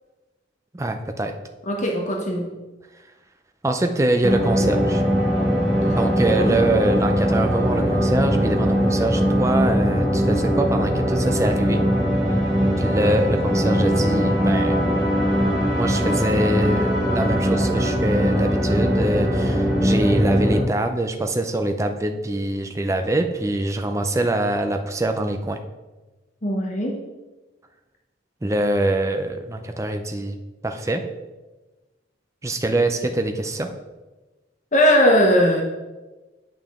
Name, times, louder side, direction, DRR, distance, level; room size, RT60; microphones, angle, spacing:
voice 1, 0.7-1.3 3.6-5.0 5.8-11.8 12.8-14.8 15.7-25.6 28.4-30.4 30.6-31.0 32.4-33.7, right 1 dB, 15° right, 5 dB, 0.5 m, -24 dB
voice 2, 1.7-2.5 6.3-6.6 26.4-26.9 34.7-35.6, equal, 40° left, 0 dB, 0.9 m, -19 dB
sound 1, 4.2-20.6, equal, 80° right, 2.5 m, -21 dB
8.9 x 5.7 x 3.6 m, 1.2 s
head